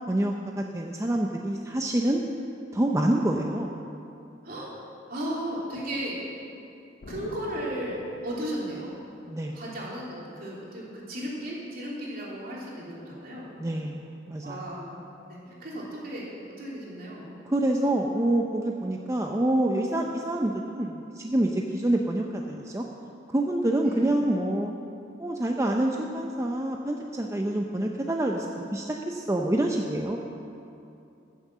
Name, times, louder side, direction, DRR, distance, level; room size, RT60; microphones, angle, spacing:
voice 1, 0.1-2.2 2.7-3.8 9.3-9.6 13.6-14.6 17.5-22.8 23.3-24.7 25.2-28.5 28.7-30.2, right 1 dB, 15° right, 1 dB, 0.6 m, -27 dB
voice 2, 5.1-6.2 7.1-8.9 9.5-13.5 14.4-15.0 15.3-16.3 16.6-17.2 23.8-24.1, right 1 dB, 50° right, -5 dB, 3.2 m, -35 dB
Explosion, 7.0-9.7, left 2 dB, 55° left, 0.7 m, -45 dB
14.5 x 7.4 x 7.3 m, 2.7 s
head